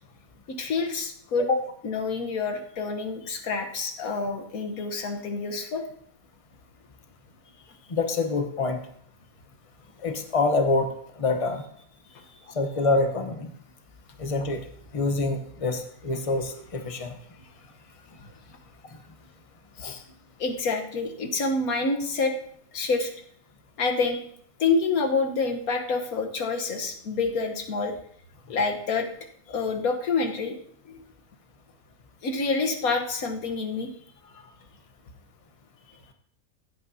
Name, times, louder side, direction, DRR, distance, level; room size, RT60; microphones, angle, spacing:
voice 1, 0.5-1.5 1.8-5.8 12.1-12.2 20.4-22.3 22.7-23.1 23.8-24.2 24.6-27.9 28.5-29.1 29.5-30.6 30.8-31.1 32.2-33.9, left 4 dB, 85° left, 4 dB, 1.6 m, -27 dB
voice 2, 7.9-8.8 10.0-10.9 11.2-11.6 12.5-13.5 14.2-14.6 14.9-17.1 19.8-20.0, left 3 dB, 30° left, 6 dB, 0.9 m, -26 dB
15.5 x 8.6 x 2.8 m, 0.65 s
omnidirectional pair, 1.5 m